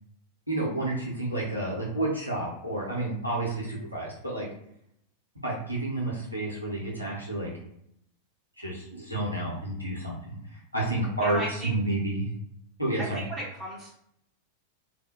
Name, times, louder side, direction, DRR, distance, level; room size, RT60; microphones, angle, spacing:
voice 1, 0.5-4.5 5.4-7.5 8.6-12.3 12.8-13.2, right 2 dB, 90° right, -4 dB, 0.7 m, -30 dB
voice 2, 11.2-11.8 13.0-13.9, right 1 dB, 15° right, -6 dB, 1.1 m, -35 dB
2.1 x 2.1 x 2.9 m, 0.73 s
figure-of-eight pair, 90°, 0 cm